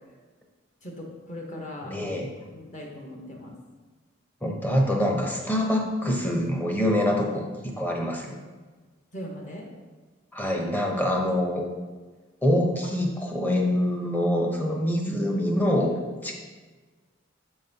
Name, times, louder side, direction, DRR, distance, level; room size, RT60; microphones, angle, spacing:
voice 1, 0.8-2.1 2.5-3.5 9.1-9.7, left 1 dB, 40° left, -1 dB, 1.1 m, -39 dB
voice 2, 1.9-2.3 4.4-8.3 10.3-11.6 12.4-16.3, left 1 dB, 10° left, 0 dB, 0.7 m, -25 dB
6.5 x 4.1 x 4.0 m, 1.4 s
head